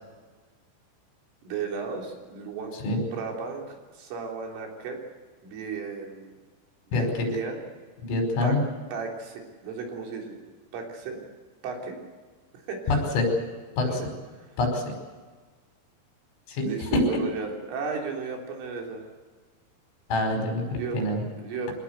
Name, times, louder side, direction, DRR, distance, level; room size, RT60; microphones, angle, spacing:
voice 1, 1.4-2.7 3.1-5.0 5.4-6.4 6.9-7.7 8.4-8.6 8.9-10.4 10.7-11.2 11.6-12.0 12.7-13.0 13.8-14.1 16.6-19.0 20.7-21.7, right 5 dB, 80° right, 1 dB, 6.2 m, -35 dB
voice 2, 6.9-7.3 8.1-8.6 12.9-13.3 13.8-13.9 14.6-14.9 16.6-17.0 20.1-21.2, left 2 dB, 85° left, 3 dB, 7.6 m, -25 dB
25.5 x 18.5 x 8.2 m, 1.4 s
omnidirectional pair, 5.7 m